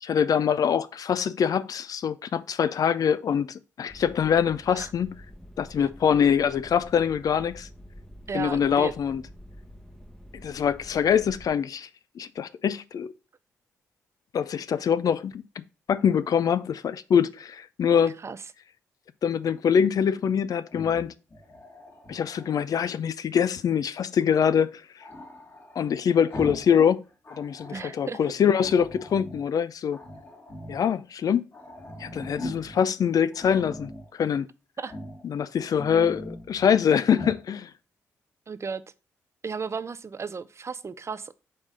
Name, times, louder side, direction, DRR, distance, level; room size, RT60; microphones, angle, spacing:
voice 1, 0.0-5.1 5.6-7.7 8.3-9.2 10.3-11.9 12.2-13.1 14.3-15.6 15.9-18.1 19.2-21.1 22.1-25.0 25.8-27.0 27.4-30.0 30.7-31.4 32.0-34.5 35.2-37.7, left 7 dB, 60° left, 0.4 m, -24 dB
sound 1, 3.9-11.5, equal, 5° left, 0.9 m, -47 dB
voice 2, 8.3-8.9 18.2-18.4 27.7-28.2 34.8-34.9 38.5-38.8 39.4-41.3, right 5 dB, 40° right, 0.5 m, -34 dB
Growling, 20.6-22.6 25.0-26.8 27.1-28.0 28.6-29.5 29.9-30.9 31.2-31.3 31.5-32.8 33.3-34.1 34.8-35.2 35.6-36.8 37.1-37.4, left 1 dB, 35° left, 1.8 m, -41 dB
5.4 x 3.4 x 5.3 m
hypercardioid pair, 45°, 7 cm